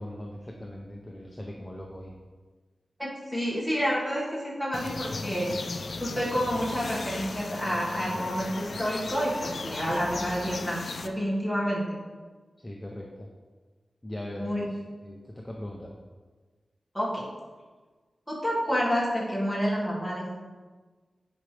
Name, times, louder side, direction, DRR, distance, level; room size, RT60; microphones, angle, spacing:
voice 1, 0.0-2.2 8.1-8.3 12.6-13.3 14.0-14.8 15.0-15.9, left 1 dB, 15° left, -1 dB, 0.6 m, -40 dB
voice 2, 3.0-5.5 6.0-12.0 14.4-14.7 16.9-17.3 18.3-20.3, equal, ahead, -6 dB, 1.8 m, -29 dB
sound 1, 4.7-11.1, left 3 dB, 60° left, 0.4 m, -37 dB
9.8 x 5.0 x 3.3 m, 1.4 s
wide cardioid pair, 140°, 0 cm